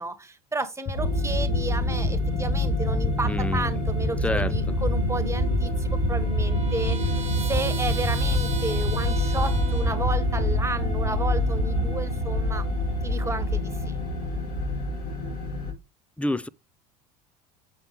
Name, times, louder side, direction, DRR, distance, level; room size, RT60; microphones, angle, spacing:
voice 1, 0.0-7.2 7.5-12.7 13.0-14.0, right 3 dB, 15° right, 1.5 m, -32 dB
sound 1, 0.9-15.7, left 1 dB, 80° left, 2.6 m, -26 dB
sound 2, 0.9-1.1 1.4-1.6 1.9-2.1 2.4-2.6 2.9-3.1 3.4-3.6 3.9-4.1 4.4-4.6 4.9-5.1 5.4-5.6 5.9-6.1 6.4-6.6 6.9-7.1 7.4-7.6 7.9-8.1 8.4-8.6 8.9-9.1 9.4-9.6 9.9-10.1 10.4-10.6 10.9-11.1, left 7 dB, 30° left, 1.0 m, -29 dB
voice 2, 3.2-3.7 4.2-4.8 16.2-16.5, left 1 dB, 5° left, 0.4 m, -28 dB
Trumpet, 5.5-10.2, right 5 dB, 35° right, 1.3 m, -39 dB
7.3 x 5.7 x 3.5 m
hypercardioid pair, 75°, 20 cm